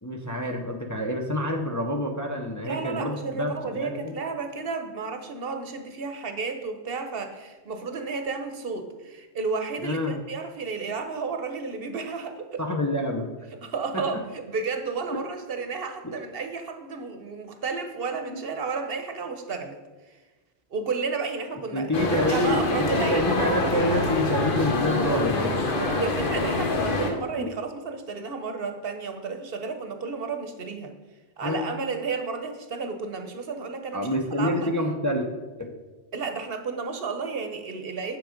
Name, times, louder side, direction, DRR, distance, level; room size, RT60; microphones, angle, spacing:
voice 1, 0.0-4.1 9.8-10.2 12.6-13.3 13.9-14.0 15.1-15.2 16.0-16.1 18.3-18.4 21.7-25.5 27.4-27.5 31.4-31.7 33.9-35.3 35.6-35.7, left 1 dB, 20° left, 2 dB, 0.6 m, -27 dB
voice 2, 2.6-12.6 13.6-19.8 20.1-20.2 20.7-21.9 22.2-23.6 25.9-30.9 31.4-34.1 34.4-34.7 36.1-38.2, right 4 dB, 60° right, 6 dB, 1.0 m, -32 dB
sound 1, 21.9-27.1, left 2 dB, 55° left, 1.2 m, -25 dB
7.5 x 6.1 x 5.0 m, 1.3 s
omnidirectional pair, 1.1 m